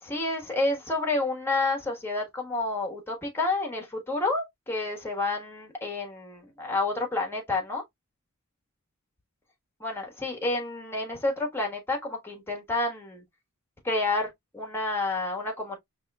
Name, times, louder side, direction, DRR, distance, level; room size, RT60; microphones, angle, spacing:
voice 1, 0.0-7.8 9.8-13.2 13.8-15.8, left 2 dB, 10° left, 1.3 m, -29 dB
5.4 x 3.1 x 2.2 m
head